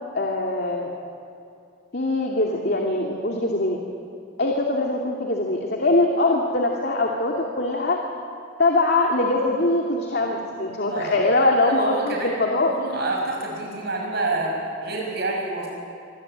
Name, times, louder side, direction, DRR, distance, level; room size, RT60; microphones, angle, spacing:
voice 1, 0.1-0.9 1.9-3.8 4.4-8.0 8.6-12.7, left 2 dB, 55° left, 0 dB, 2.6 m, -22 dB
voice 2, 11.6-12.4 12.7-14.5 14.8-15.7, right 2 dB, 55° right, -1 dB, 6.1 m, -27 dB
27.0 x 24.5 x 8.9 m, 2.7 s
head